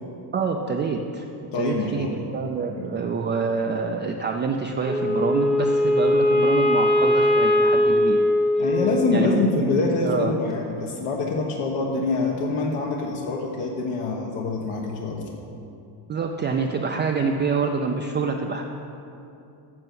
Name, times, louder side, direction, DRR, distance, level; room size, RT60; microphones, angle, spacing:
voice 1, 0.3-1.2 1.6-8.2 9.1-10.3 16.1-18.6, right 5 dB, 25° right, 2 dB, 0.3 m, -26 dB
voice 2, 1.5-2.2 2.8-2.9 8.6-15.3, left 3 dB, 75° left, -1 dB, 1.2 m, -25 dB
Wind instrument woodwind instrument, 4.8-9.3, left 1 dB, ahead, 0.9 m, -20 dB
7.7 x 6.7 x 7.6 m, 2.7 s
cardioid pair, 125°, 50 cm